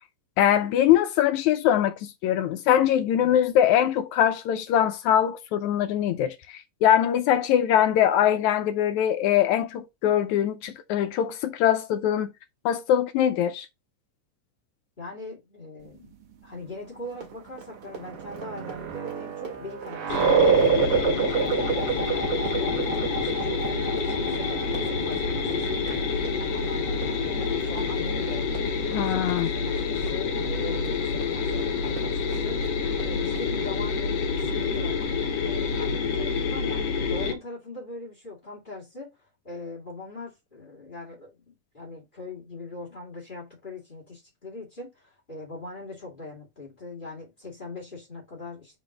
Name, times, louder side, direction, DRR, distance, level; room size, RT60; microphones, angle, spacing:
voice 1, 0.4-12.3 12.7-13.7 28.9-29.5, left 10 dB, 80° left, 1.8 m, -22 dB
voice 2, 15.0-16.1 16.4-26.0 26.4-28.4 28.8-36.8 37.1-39.1 39.4-48.8, left 2 dB, 20° left, 1.7 m, -41 dB
Run, 17.0-33.5, right 6 dB, 40° right, 2.3 m, -44 dB
sound 1, 17.5-29.0, right 6 dB, 60° right, 1.6 m, -28 dB
sound 2, 20.1-37.3, left 5 dB, 60° left, 1.9 m, -28 dB
5.2 x 4.0 x 4.8 m
omnidirectional pair, 3.7 m